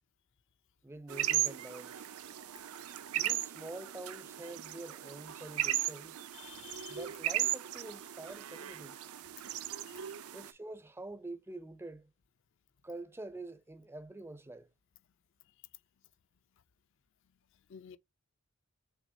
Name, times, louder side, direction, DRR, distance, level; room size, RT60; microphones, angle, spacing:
voice 1, 0.8-2.1 3.1-6.2 6.9-9.0 10.3-12.1 12.8-14.7, right 2 dB, 10° right, 0.4 m, -46 dB
sound 1, 1.1-10.5, right 13 dB, 80° right, 0.5 m, -37 dB
voice 2, 6.3-7.1 9.9-10.3 15.4-15.5 17.2-18.0, left 9 dB, 55° left, 0.4 m, -54 dB
6.2 x 3.1 x 2.7 m
head